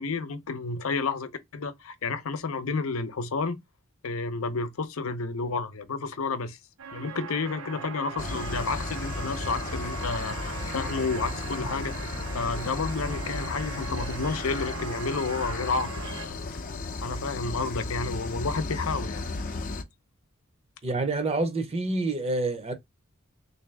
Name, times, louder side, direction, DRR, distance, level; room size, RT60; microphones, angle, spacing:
voice 1, 0.0-3.6 4.0-6.6 6.9-11.9 12.3-16.4 17.0-19.2, left 4 dB, 85° left, 0.6 m, -31 dB
sound 1, 6.8-16.3, right 5 dB, 70° right, 0.5 m, -39 dB
sound 2, 8.2-19.8, left 3 dB, 40° left, 0.6 m, -34 dB
voice 2, 20.8-22.7, right 2 dB, 30° right, 0.7 m, -27 dB
3.6 x 2.7 x 3.2 m
head